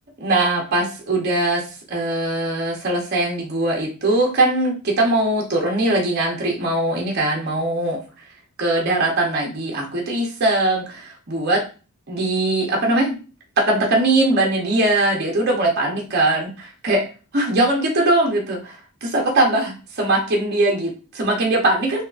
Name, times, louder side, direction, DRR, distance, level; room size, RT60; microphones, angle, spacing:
voice 1, 0.2-1.6 1.9-8.0 8.6-11.6 12.1-13.2 13.7-16.5 16.8-17.0 17.3-22.0, right 2 dB, 50° right, -1 dB, 0.7 m, -20 dB
3.5 x 2.7 x 2.4 m, 0.35 s
head